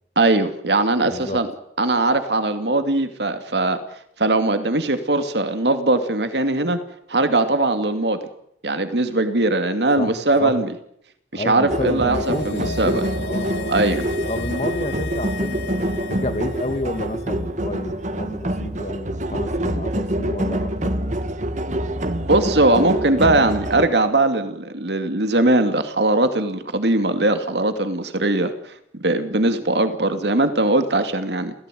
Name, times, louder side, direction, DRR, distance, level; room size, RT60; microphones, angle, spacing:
voice 1, 0.2-1.5 1.8-3.8 4.2-6.8 7.1-8.2 8.6-10.7 11.3-13.1 13.7-14.0 22.3-31.5, right 2 dB, 70° right, 9 dB, 2.6 m, -20 dB
voice 2, 1.0-1.4 10.0-10.6 11.3-13.8 14.3-20.9, left 1 dB, 40° left, 10 dB, 2.1 m, -30 dB
sound 1, 11.7-23.9, right 1 dB, 45° right, 1.7 m, -26 dB
sound 2, 11.8-17.3 17.5-17.6, left 4 dB, 65° left, 2.4 m, -35 dB
29.0 x 16.5 x 9.3 m, 0.74 s
head